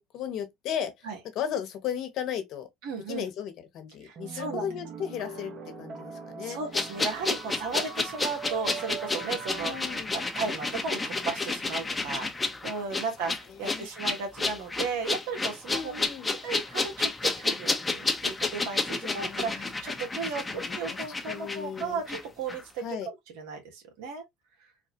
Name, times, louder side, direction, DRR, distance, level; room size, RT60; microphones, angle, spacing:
voice 1, 0.0-1.1 1.3-2.7 3.1-5.5 5.8-6.6 9.5-10.1 12.9-13.0 13.6-13.9 15.7-16.3 19.0-19.6 20.1-20.2 20.5-21.0 21.3-22.0 22.8-23.1, left 9 dB, 65° left, 1.1 m, -35 dB
voice 2, 2.8-3.3 4.0-4.7 6.4-9.7 10.1-15.9 16.4-24.2, right 4 dB, 80° right, 1.3 m, -35 dB
sound 1, 4.1-11.2, right 6 dB, 50° right, 1.2 m, -42 dB
sound 2, 6.7-22.2 22.5-22.6, left 3 dB, 20° left, 0.9 m, -31 dB
4.1 x 2.4 x 2.9 m
hypercardioid pair, 75°, 0 cm